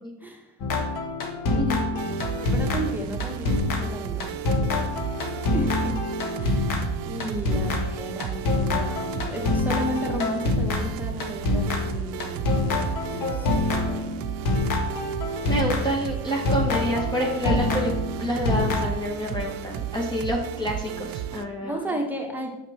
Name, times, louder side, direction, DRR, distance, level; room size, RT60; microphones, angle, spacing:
voice 1, 0.2-0.6 1.4-1.7 1.9-4.3 5.5-6.0 6.4-12.5 13.1-14.1 15.5-15.7 21.6-22.5, right 1 dB, 5° right, 0 dB, 1.7 m, -34 dB
sound 1, 0.6-16.1 16.4-18.9, left 2 dB, 70° left, 1.6 m, -26 dB
sound 2, 2.0-21.5, right 10 dB, 80° right, 0.6 m, -34 dB
voice 2, 15.5-17.9 18.2-21.8, equal, 15° left, -1 dB, 1.6 m, -28 dB
7.3 x 5.8 x 4.5 m, 0.95 s
supercardioid pair, 75°, 34 cm